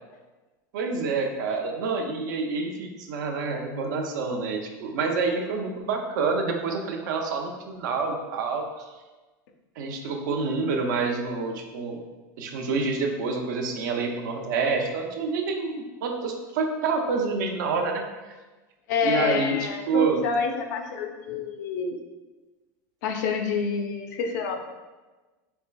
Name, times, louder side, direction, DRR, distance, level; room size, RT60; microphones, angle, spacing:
voice 1, 0.7-8.6 9.8-12.0 12.4-18.0 19.0-20.2, right 4 dB, 85° right, 2 dB, 0.6 m, -27 dB
voice 2, 18.9-22.0 23.0-24.6, left 5 dB, 75° left, 4 dB, 0.5 m, -28 dB
4.3 x 3.2 x 2.2 m, 1.2 s
supercardioid pair, 130°, 10 cm